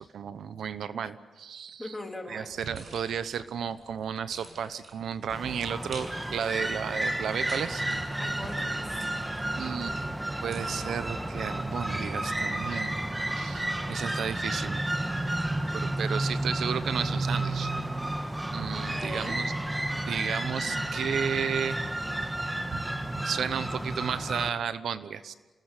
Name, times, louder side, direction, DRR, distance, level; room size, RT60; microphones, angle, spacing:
voice 1, 0.0-1.9 2.3-7.8 9.6-10.0 10.4-13.0 13.4-14.8 15.2-15.4 15.7-17.7 18.5-19.5 20.1-21.8 22.7-22.8 23.1-25.3, right 7 dB, 80° right, 13 dB, 1.0 m, -33 dB
voice 2, 1.8-2.5 8.2-9.0 18.7-19.4, left 1 dB, 10° left, 2 dB, 3.4 m, -40 dB
sound 1, 2.5-11.1, right 2 dB, 45° right, 6.8 m, -49 dB
sound 2, 5.3-24.5, right 1 dB, 10° right, 1.4 m, -31 dB
27.5 x 20.0 x 8.4 m, 1.3 s
wide cardioid pair, 145°, 0 cm